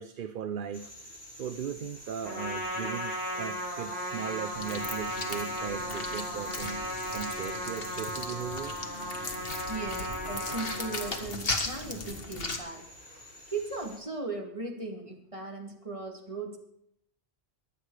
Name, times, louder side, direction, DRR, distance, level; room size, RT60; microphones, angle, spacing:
voice 1, 0.0-8.8, right 8 dB, 55° right, 11 dB, 0.8 m, -38 dB
sound 1, 0.7-14.0, equal, 75° right, 6.9 m, -48 dB
Trumpet, 2.2-11.2, equal, 10° right, 4.7 m, -36 dB
sound 2, 4.5-12.6, left 3 dB, 60° left, 1.9 m, -37 dB
voice 2, 9.7-12.8 13.5-16.6, right 3 dB, 30° right, 2 dB, 2.6 m, -37 dB
22.5 x 8.5 x 4.9 m, 0.72 s
omnidirectional pair, 1.1 m